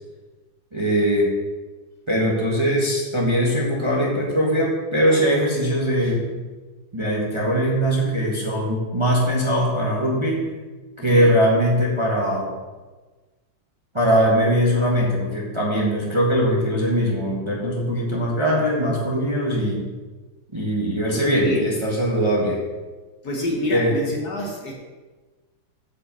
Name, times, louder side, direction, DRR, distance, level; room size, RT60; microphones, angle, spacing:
voice 1, 0.7-1.3 2.1-6.3 6.9-10.5 11.0-12.6 13.9-19.9 20.5-22.6 23.7-24.0, equal, 15° right, -3 dB, 1.3 m, -21 dB
voice 2, 21.1-21.7 23.2-24.7, left 1 dB, 50° left, -1 dB, 1.7 m, -27 dB
8.2 x 5.8 x 6.9 m, 1.3 s
omnidirectional pair, 2.4 m